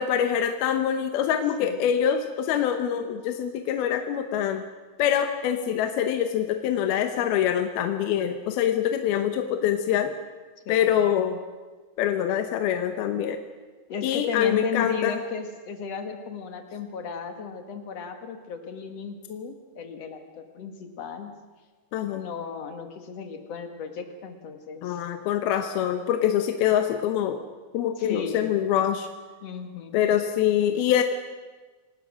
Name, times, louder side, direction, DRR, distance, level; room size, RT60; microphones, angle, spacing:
voice 1, 0.0-4.6 5.0-10.1 10.7-11.4 12.0-13.4 14.0-15.2 21.9-22.3 24.8-27.4 27.7-29.1 29.9-31.0, left 9 dB, 75° left, 7 dB, 2.7 m, -25 dB
voice 2, 10.7-11.0 13.9-21.3 22.1-25.0 28.0-28.5 29.4-30.1, left 5 dB, 50° left, 6 dB, 2.1 m, -35 dB
28.0 x 18.5 x 6.3 m, 1.3 s
omnidirectional pair, 4.9 m